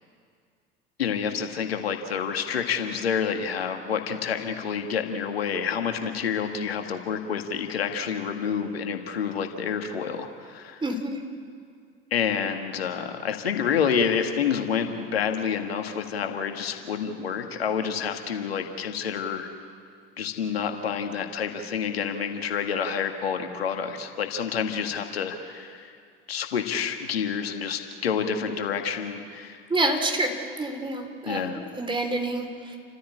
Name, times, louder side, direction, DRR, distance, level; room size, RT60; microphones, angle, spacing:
voice 1, 1.0-10.8 12.1-19.5 20.2-25.9 26.3-29.6 31.3-31.6, left 7 dB, 85° left, 5 dB, 2.0 m, -28 dB
voice 2, 10.8-11.2 29.7-32.8, right 2 dB, 15° right, 5 dB, 3.8 m, -28 dB
29.5 x 15.0 x 8.7 m, 2.2 s
hypercardioid pair, 75°, 30 cm